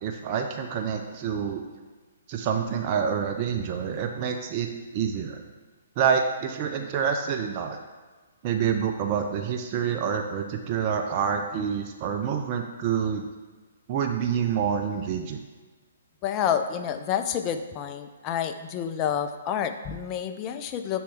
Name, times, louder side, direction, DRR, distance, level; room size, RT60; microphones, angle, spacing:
voice 1, 0.0-1.6 2.3-5.4 6.0-7.8 8.4-13.3 13.9-15.4, right 7 dB, 35° right, 4 dB, 0.4 m, -27 dB
voice 2, 16.2-21.0, left 9 dB, 30° left, 8 dB, 0.4 m, -29 dB
6.2 x 4.3 x 3.5 m, 1.3 s
figure-of-eight pair, 130°, 0 cm